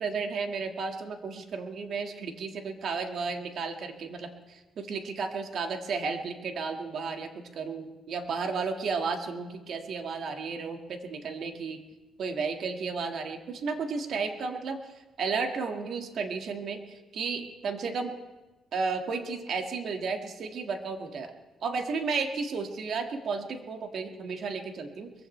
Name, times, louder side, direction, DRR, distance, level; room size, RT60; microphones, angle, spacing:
voice 1, 0.0-11.8 12.2-18.2 18.7-21.3 21.6-25.1, right 4 dB, 65° right, 4 dB, 1.8 m, -33 dB
22.0 x 16.0 x 3.3 m, 1.1 s
cardioid pair, 90°, 0 cm